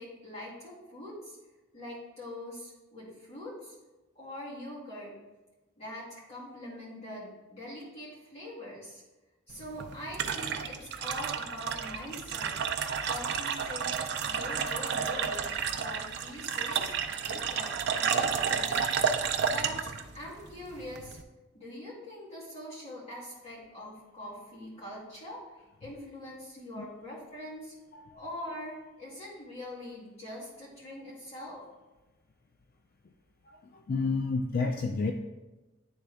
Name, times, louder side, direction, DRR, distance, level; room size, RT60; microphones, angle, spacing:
voice 1, 0.0-1.4 1.7-3.7 4.2-5.2 5.8-9.0 9.5-12.5 13.1-18.9 19.2-21.2 21.5-25.4 25.8-27.7 28.2-31.6, left 1 dB, 35° left, -10 dB, 2.1 m, -43 dB
sound 1, 9.5-21.2, right 6 dB, 60° right, 0.4 m, -31 dB
voice 2, 33.5-35.1, left 4 dB, 50° left, 4 dB, 0.4 m, -31 dB
9.7 x 3.5 x 3.4 m, 1.1 s
head